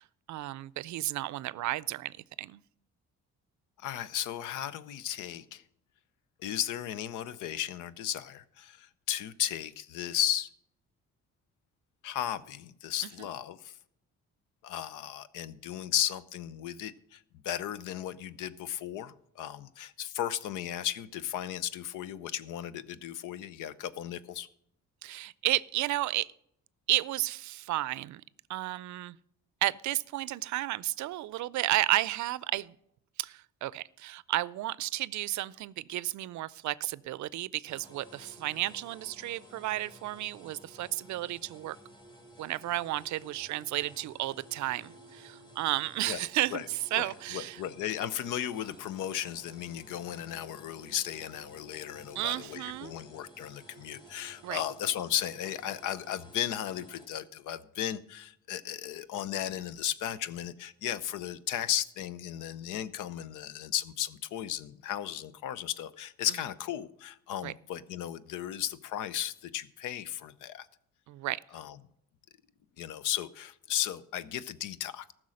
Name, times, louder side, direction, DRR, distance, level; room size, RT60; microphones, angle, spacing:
voice 1, 0.0-2.6 25.0-26.3 26.9-28.2 28.5-29.2 29.6-32.8 33.2-41.8 42.4-47.6 52.2-52.9 54.4-54.6 67.4-67.5 71.1-71.4, right 16 dB, 70° right, 0.5 m, -32 dB
voice 2, 3.8-5.6 6.4-10.5 12.0-13.8 14.6-24.5 46.1-46.2 46.5-46.6 47.0-70.7 71.5-71.8 72.8-75.1, left 11 dB, 85° left, 0.7 m, -35 dB
sound 1, 37.6-57.1, right 1 dB, 15° left, 2.9 m, -54 dB
14.5 x 6.2 x 6.4 m
cardioid pair, 90°, 30 cm